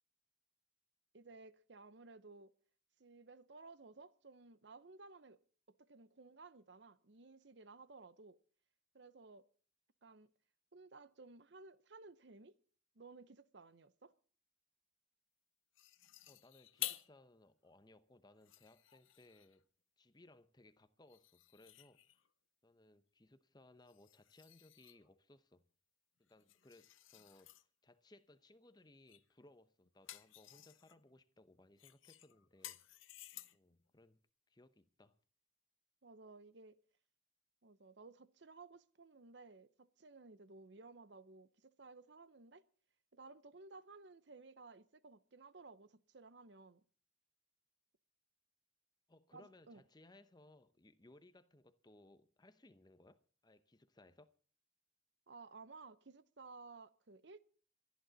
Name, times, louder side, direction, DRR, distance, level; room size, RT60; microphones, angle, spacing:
voice 1, 1.1-2.5 3.0-5.4 5.8-8.4 8.9-9.5 10.0-10.3 10.7-12.6 12.9-14.1 36.0-36.8 37.6-42.7 43.1-46.8 49.3-49.8 55.3-57.4, right 3 dB, 60° right, 0.8 m, -57 dB
sound 1, 15.8-17.2 17.7-17.8 18.3-19.6 21.1-22.3 23.9-25.1 26.3-27.6 29.1-29.3 29.7-31.0 31.8-33.8, left 15 dB, 85° left, 0.7 m, -51 dB
voice 2, 16.3-19.7 20.0-22.0 22.6-25.7 26.2-32.9 33.5-34.2 34.5-35.2 49.1-54.4, left 2 dB, 20° left, 0.7 m, -64 dB
26.5 x 10.5 x 4.0 m
head